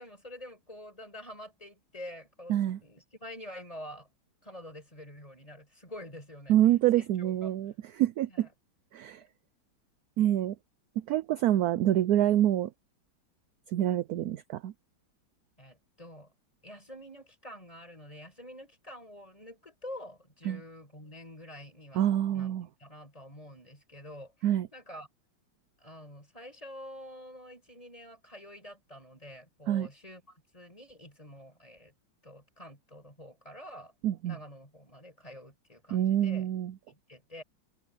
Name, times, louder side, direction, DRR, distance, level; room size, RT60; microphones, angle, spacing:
voice 1, 0.0-2.5 2.8-4.1 4.4-6.6 6.9-7.5 8.3-8.5 15.6-16.3 16.6-24.3 24.7-25.1 25.8-31.9 32.2-33.9 34.2-36.5 36.9-37.4, left 1 dB, 15° left, 6.6 m, -47 dB
voice 2, 6.5-8.5 8.9-9.2 10.2-10.5 11.1-12.7 13.7-14.7 20.4-20.6 22.0-22.7 24.4-24.7 29.7-29.9 34.0-34.4 35.9-36.8, right 12 dB, 75° right, 0.9 m, -26 dB
omnidirectional pair, 2.1 m